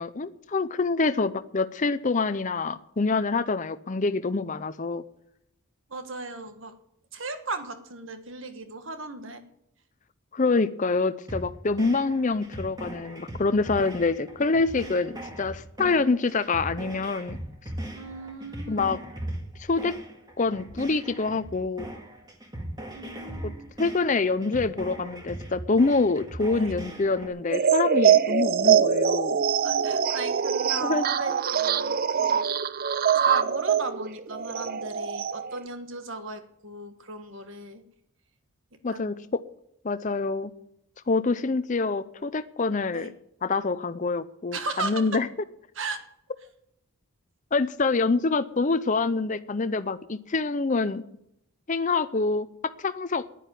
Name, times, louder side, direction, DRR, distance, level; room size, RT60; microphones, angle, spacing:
voice 1, 0.0-5.0 10.3-17.4 18.7-19.0 19.6-19.9 20.4-21.9 23.4-23.5 23.8-29.4 30.8-31.0 38.8-39.4 39.8-40.5 41.1-43.1 43.4-45.3 47.5-51.0 51.7-52.5 52.8-53.2, left 3 dB, 35° left, 11 dB, 0.5 m, -26 dB
voice 2, 5.9-6.7 7.1-9.4 17.9-19.0 22.9-23.7 26.5-26.7 29.6-32.4 32.9-37.8 38.9-39.3 42.9-43.1 44.5-45.0 45.7-46.0, right 3 dB, 60° right, 8 dB, 1.5 m, -36 dB
sound 1, 11.3-27.3, right 1 dB, 20° right, 1.8 m, -39 dB
sound 2, 27.5-35.6, right 7 dB, 40° right, 0.4 m, -23 dB
10.5 x 10.0 x 9.3 m, 0.77 s
head